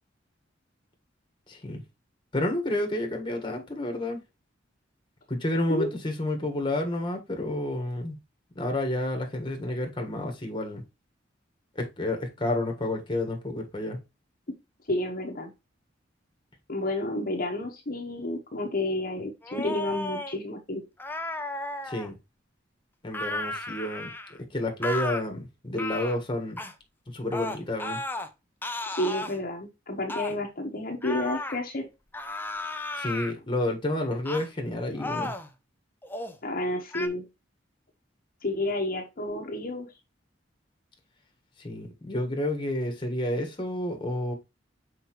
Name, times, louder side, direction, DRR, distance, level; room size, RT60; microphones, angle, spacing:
voice 1, 1.5-1.8 2.3-4.2 5.3-8.2 8.5-10.8 11.7-14.0 21.8-22.2 23.0-26.6 27.1-28.0 33.0-35.3 41.6-44.3, left 1 dB, 25° left, 1.5 m, -30 dB
voice 2, 14.9-15.5 16.7-20.8 28.9-31.9 36.4-37.2 38.4-39.9, left 1 dB, 50° left, 1.2 m, -30 dB
sound 1, 19.4-20.4 21.0-22.1 23.1-24.4 24.8-25.2 25.8-26.2 26.6-26.7 27.3-28.3 28.6-29.4 30.1-30.3 31.0-31.6 32.1-33.3 34.2-34.5 34.9-35.5 36.0-36.4 36.9-37.1, left 2 dB, 10° left, 0.6 m, -34 dB
6.5 x 4.7 x 3.1 m
head